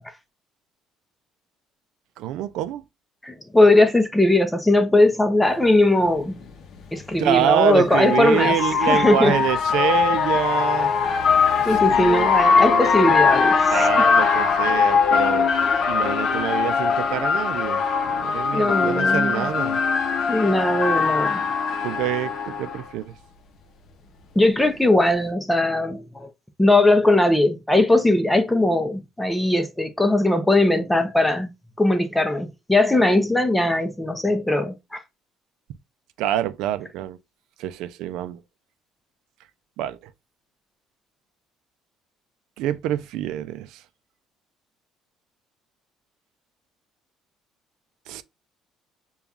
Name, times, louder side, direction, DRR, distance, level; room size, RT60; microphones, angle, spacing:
voice 1, 2.2-2.8 7.2-10.9 11.8-13.2 13.7-15.5 15.9-19.8 21.8-23.1 36.2-37.2 37.6-38.4 39.8-40.0 42.6-43.8 48.1-48.2, right 12 dB, 80° right, 0.4 m, -26 dB
voice 2, 3.2-6.4 6.9-8.6 8.8-9.4 11.6-14.0 18.5-19.5 20.3-21.4 24.4-26.3 26.6-31.5 31.8-35.0, left 2 dB, 5° left, 0.5 m, -19 dB
sound 1, 5.7-5.8 7.2-22.8, left 5 dB, 45° left, 0.7 m, -21 dB
6.9 x 2.3 x 2.3 m
cardioid pair, 150°, 0 cm